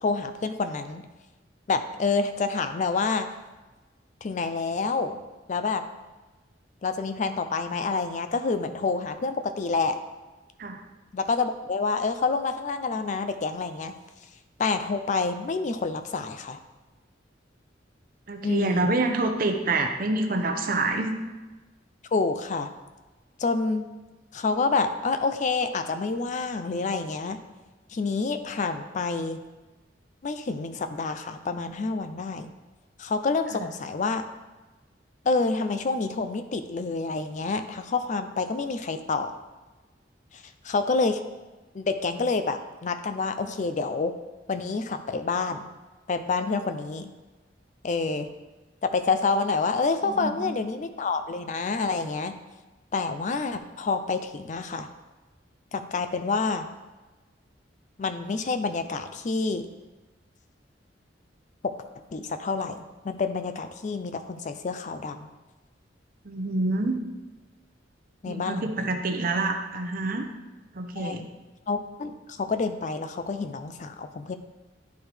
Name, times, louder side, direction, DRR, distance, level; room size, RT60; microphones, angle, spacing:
voice 1, 0.0-1.0 1.7-3.3 4.2-5.2 5.5-5.8 6.8-10.0 11.1-13.9 14.6-16.6 18.4-18.9 22.1-22.7 23.4-23.8 24.3-27.4 27.9-29.4 30.2-32.5 33.0-34.3 35.3-39.3 40.3-41.2 41.7-44.1 44.5-45.7 46.1-47.1 47.8-48.3 48.8-52.3 52.9-54.9 55.7-56.7 58.0-59.7 61.6-61.7 62.1-65.3 68.2-69.0 71.0-71.3 71.7-74.4, left 4 dB, 40° left, 9 dB, 0.4 m, -28 dB
voice 2, 18.3-21.1 50.0-50.5 66.2-67.0 68.3-70.3 70.7-71.2, right 2 dB, 50° right, 5 dB, 0.7 m, -27 dB
10.5 x 4.4 x 3.4 m, 1.2 s
head